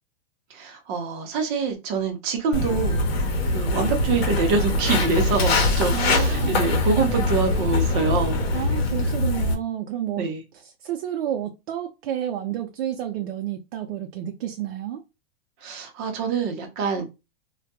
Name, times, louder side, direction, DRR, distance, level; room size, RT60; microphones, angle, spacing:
voice 1, 0.5-3.0 3.5-8.5 10.2-10.4 15.6-17.0, right 5 dB, 35° right, 0.6 m, -25 dB
Walk footsteps, 2.5-9.5, left 2 dB, 80° left, 0.8 m, -23 dB
voice 2, 5.9-6.7 8.5-15.0, right 10 dB, 75° right, 0.5 m, -30 dB
2.2 x 2.1 x 2.8 m
supercardioid pair, 145°, 30 cm